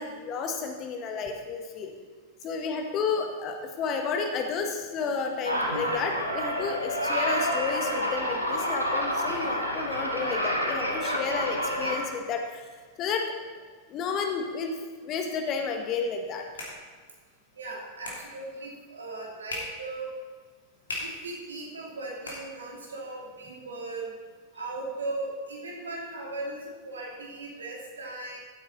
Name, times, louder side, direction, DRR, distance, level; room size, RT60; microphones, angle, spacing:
voice 1, 0.0-1.9 2.4-12.7 13.0-13.2 13.9-14.7 15.0-16.4, left 5 dB, 35° left, 4 dB, 1.5 m, -31 dB
sound 1, 5.4-12.1, equal, 85° right, 1.3 m, -29 dB
sound 2, 16.0-23.1, left 2 dB, 70° left, 3.1 m, -43 dB
voice 2, 17.6-20.1 21.0-24.1 24.5-28.4, right 2 dB, 70° right, -1 dB, 2.7 m, -38 dB
14.5 x 8.7 x 4.1 m, 1.5 s
figure-of-eight pair, 90°, 0 cm